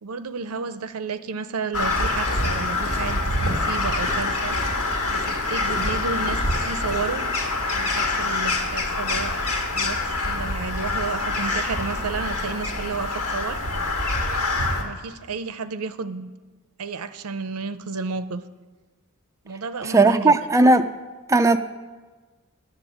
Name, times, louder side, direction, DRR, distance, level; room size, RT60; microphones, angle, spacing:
voice 1, 0.0-4.6 5.1-7.2 7.7-9.4 9.8-13.6 14.8-16.3 16.8-18.4 19.4-20.3, right 4 dB, 80° right, 12 dB, 0.6 m, -32 dB
Crow, 1.7-14.8, left 2 dB, 85° left, 1.8 m, -25 dB
voice 2, 19.9-20.9 21.3-21.6, right 2 dB, 15° right, 7 dB, 0.3 m, -16 dB
9.0 x 7.4 x 8.6 m, 1.3 s
head